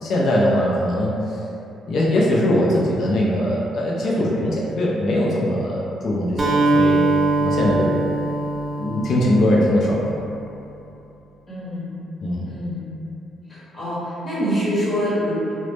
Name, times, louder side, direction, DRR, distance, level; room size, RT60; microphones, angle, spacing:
voice 1, 0.0-1.1 1.9-7.0 7.4-8.0 8.8-10.2 12.2-12.5, left 1 dB, 65° left, -5 dB, 0.4 m, -21 dB
Acoustic guitar, 6.4-10.2, right 2 dB, 25° right, 0.4 m, -22 dB
voice 2, 11.5-12.0 12.5-12.9 13.5-15.5, equal, 35° left, -11 dB, 0.9 m, -26 dB
2.0 x 2.0 x 3.0 m, 2.8 s
cardioid pair, 90°, 0 cm